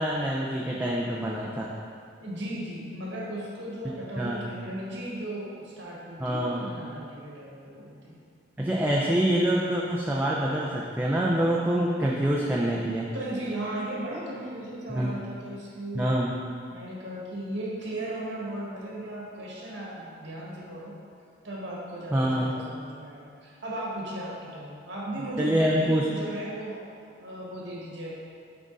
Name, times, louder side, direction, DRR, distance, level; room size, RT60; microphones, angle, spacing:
voice 1, 0.0-1.7 4.2-4.4 6.2-6.6 8.6-13.1 14.9-15.1 15.9-16.3 22.1-22.5 25.4-26.0, right 1 dB, 10° right, -4 dB, 0.4 m, -26 dB
voice 2, 2.2-8.2 13.1-16.1 16.7-20.9 21.4-28.1, right 1 dB, 75° right, -4 dB, 1.5 m, -36 dB
6.1 x 5.0 x 3.9 m, 2.3 s
head